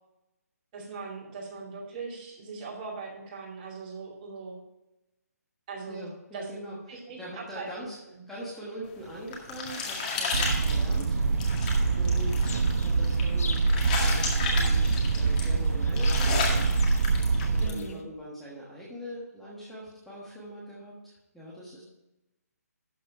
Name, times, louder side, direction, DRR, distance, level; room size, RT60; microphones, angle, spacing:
voice 1, 0.7-4.6 5.7-6.0 6.3-6.5 6.9-7.9 8.2-8.3 17.6-18.0, right 4 dB, 25° right, -3 dB, 2.5 m, -40 dB
voice 2, 5.9-6.8 7.2-8.0 8.3-11.2 11.9-12.4 12.7-14.8 15.1-16.7 17.5-21.8, equal, ahead, -8 dB, 1.3 m, -42 dB
sound 1, 8.9-17.8, left 4 dB, 30° left, 2.0 m, -34 dB
sound 2, 10.3-17.7, right 4 dB, 65° right, 0.8 m, -25 dB
sound 3, 12.4-18.0, left 5 dB, 60° left, 1.1 m, -46 dB
12.5 x 4.2 x 5.6 m, 0.95 s
hypercardioid pair, 165°, 9 cm